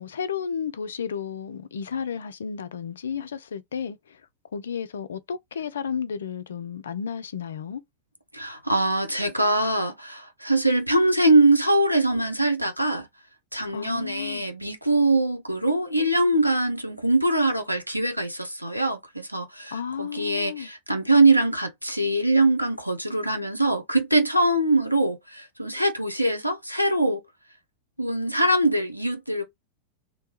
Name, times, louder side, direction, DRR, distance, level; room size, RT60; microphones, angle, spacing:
voice 1, 0.0-4.2 4.5-7.8 13.7-14.4 19.7-20.7, left 7 dB, 65° left, 0.3 m, -32 dB
voice 2, 8.3-13.1 13.5-27.2 28.0-29.4, right 2 dB, 90° right, 0.6 m, -23 dB
2.6 x 2.2 x 2.8 m
figure-of-eight pair, 90°, 0 cm